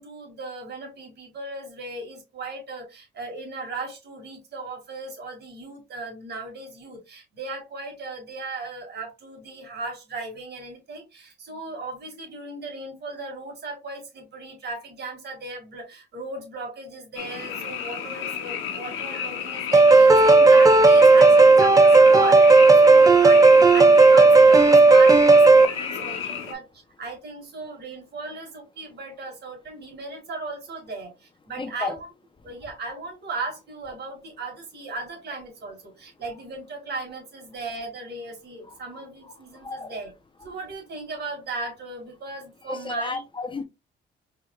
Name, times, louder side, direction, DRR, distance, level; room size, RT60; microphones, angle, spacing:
voice 1, 0.0-26.7 27.0-32.1 32.4-40.1 40.4-43.2, right 3 dB, 60° right, 2.1 m, -36 dB
Frog, 17.2-26.5, left 8 dB, 80° left, 1.1 m, -33 dB
sound 1, 19.7-25.7, right 3 dB, 20° right, 0.5 m, -13 dB
voice 2, 25.7-26.5 31.6-31.9 38.9-39.0 39.6-39.9 42.7-43.6, left 3 dB, 25° left, 0.7 m, -33 dB
4.6 x 3.3 x 2.3 m
cardioid pair, 90°, 20 cm